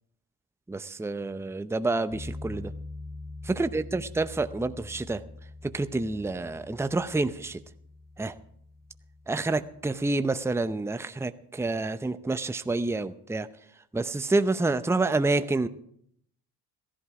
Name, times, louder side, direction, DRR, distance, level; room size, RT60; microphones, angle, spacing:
voice 1, 0.7-2.7 3.6-5.2 5.6-7.6 8.2-8.3 9.3-13.5 13.9-15.7, right 2 dB, 5° right, 11 dB, 0.7 m, -28 dB
sound 1, 2.1-10.3, left 2 dB, 55° left, 7.2 m, -44 dB
16.0 x 11.5 x 4.9 m, 0.69 s
supercardioid pair, 70°, 41 cm